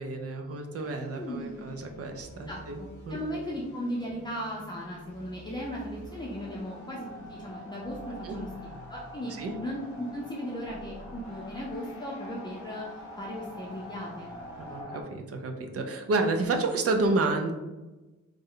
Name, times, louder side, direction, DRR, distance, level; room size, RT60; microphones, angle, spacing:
voice 1, 0.0-2.8 3.1-3.2 8.2-8.4 9.4-9.5 14.6-17.5, right 3 dB, 55° right, 5 dB, 0.5 m, -30 dB
sound 1, 0.7-14.8, equal, 75° left, 0.7 m, -50 dB
voice 2, 1.2-1.6 2.5-9.3 9.6-14.3, equal, 15° left, -5 dB, 0.5 m, -37 dB
sound 2, 5.9-15.0, equal, 5° right, 1.1 m, -45 dB
3.1 x 2.1 x 3.7 m, 1.1 s
wide cardioid pair, 125°, 29 cm